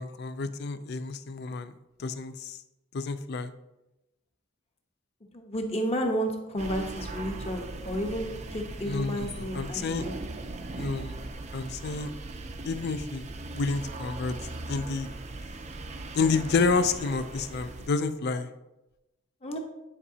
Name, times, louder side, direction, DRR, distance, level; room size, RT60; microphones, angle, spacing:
voice 1, 0.0-1.7 2.0-2.6 2.9-3.5 8.8-10.0 10.8-11.2 11.5-12.1 12.6-14.4 14.7-15.1 16.1-18.5, left 4 dB, 50° left, 12 dB, 0.4 m, -29 dB
voice 2, 5.3-10.2 19.4-19.6, equal, 30° left, 3 dB, 0.9 m, -32 dB
sound 1, 6.6-17.9, right 2 dB, 35° right, 0.5 m, -39 dB
9.9 x 4.8 x 2.8 m, 0.97 s
head